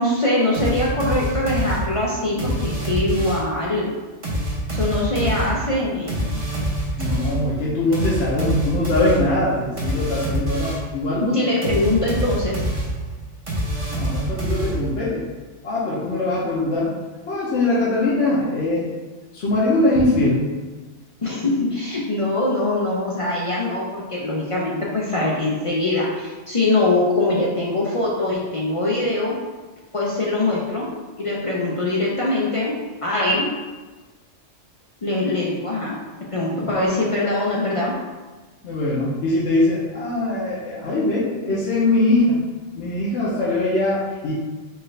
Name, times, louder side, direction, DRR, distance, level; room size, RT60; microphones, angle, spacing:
voice 1, 0.0-3.9 4.7-6.3 11.2-12.5 21.2-29.3 29.9-30.9 31.2-32.8 33.0-33.5 35.0-36.0 36.3-37.9, left 2 dB, 45° left, -5 dB, 0.4 m, -22 dB
sound 1, 0.5-3.6 4.2-11.0 11.6-15.1, right 1 dB, 30° right, 0.8 m, -26 dB
voice 2, 7.0-11.4 13.9-15.2 15.6-16.9 17.3-18.9 19.3-20.5 38.6-42.4 42.7-44.3, left 2 dB, 65° left, -7 dB, 1.0 m, -21 dB
4.6 x 2.5 x 3.2 m, 1.3 s
omnidirectional pair, 1.2 m